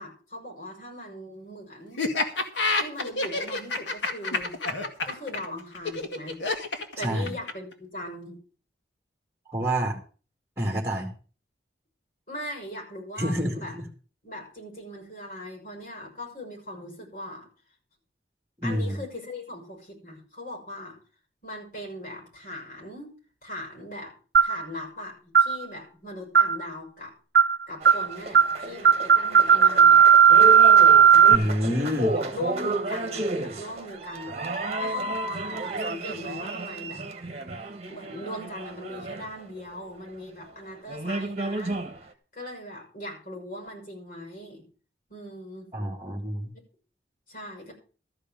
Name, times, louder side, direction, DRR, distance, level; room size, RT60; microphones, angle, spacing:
voice 1, 0.0-2.0 2.8-4.6 5.0-6.4 7.0-8.4 12.3-13.7 14.2-17.5 18.6-21.0 21.4-23.1 23.4-24.1 24.4-27.1 27.7-30.0 32.1-34.3 34.8-37.0 37.9-41.8 42.3-44.6 45.1-45.7 47.3-47.7, left 1 dB, 50° left, 0 dB, 6.5 m, -39 dB
Laughter, 2.0-7.7, left 3 dB, 90° left, 1.9 m, -28 dB
voice 2, 7.0-7.3 9.5-10.0 10.6-11.1 13.2-13.8 18.6-19.0 31.3-32.2 45.7-46.5, equal, 15° right, 0 dB, 2.2 m, -28 dB
sound 1, 24.3-24.6 25.3-25.6 26.3-26.6 27.3-27.6 27.8-28.1 28.3-28.6 28.8-31.3, right 7 dB, 60° right, 0.7 m, -15 dB
sound 2, 27.8-39.8 40.5-40.6 40.9-42.1, right 2 dB, 35° right, 1.6 m, -32 dB
13.5 x 5.1 x 9.0 m, 0.38 s
head